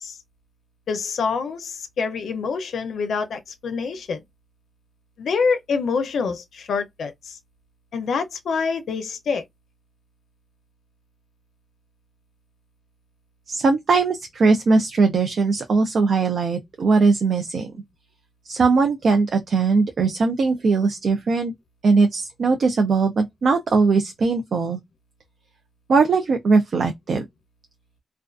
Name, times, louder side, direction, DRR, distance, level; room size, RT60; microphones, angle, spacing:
voice 1, 0.9-4.2 5.2-7.4 7.9-9.4, left 5 dB, 85° left, 0.5 m, -26 dB
voice 2, 13.5-17.7 18.5-21.5 21.8-24.8 25.9-27.3, right 4 dB, 65° right, 0.4 m, -20 dB
2.3 x 2.3 x 2.3 m
wide cardioid pair, 105°, 0 cm